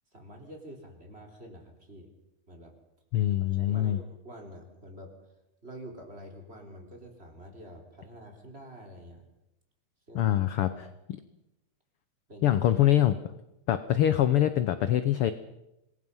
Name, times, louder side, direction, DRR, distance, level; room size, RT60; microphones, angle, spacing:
voice 1, 0.1-2.1 2.5-2.7 3.5-5.1 5.6-9.3 10.1-10.3 10.6-10.9 12.3-12.6, equal, 20° right, 2 dB, 3.8 m, -47 dB
voice 2, 3.1-4.0 10.1-10.9 12.4-13.2 13.7-15.3, left 12 dB, 70° left, 11 dB, 1.4 m, -24 dB
27.0 x 21.0 x 5.6 m, 0.89 s
omnidirectional pair, 3.5 m